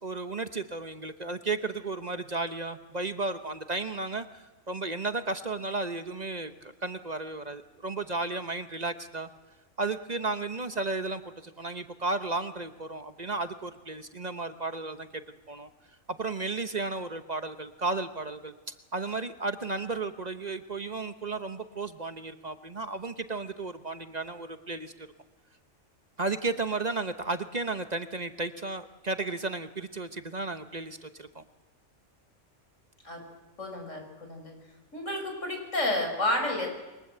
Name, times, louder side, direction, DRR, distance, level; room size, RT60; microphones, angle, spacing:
voice 1, 0.0-9.3 9.8-15.2 15.5-15.7 16.1-25.1 26.2-31.4, right 3 dB, 35° right, 9 dB, 1.1 m, -34 dB
voice 2, 33.6-34.6 34.9-36.7, left 1 dB, 85° left, 3 dB, 6.2 m, -30 dB
28.0 x 23.0 x 7.9 m, 1.1 s
omnidirectional pair, 1.3 m